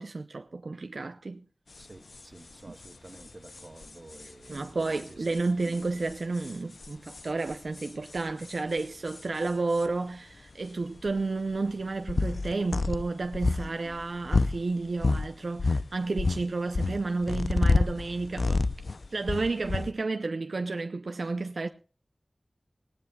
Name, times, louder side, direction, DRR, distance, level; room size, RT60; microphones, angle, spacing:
voice 1, 0.0-1.5 2.7-2.8 4.5-18.6 19.1-21.7, right 3 dB, 85° right, 0.6 m, -31 dB
sound 1, 1.8-1.9 2.1-2.3 2.5-2.6 2.8-9.9 10.6-10.7 11.0-15.3 15.6-19.9, left 3 dB, 75° left, 0.5 m, -29 dB
voice 2, 1.8-5.5, right 2 dB, 50° right, 1.5 m, -51 dB
20.0 x 17.0 x 2.3 m
wide cardioid pair, 60°, 0 cm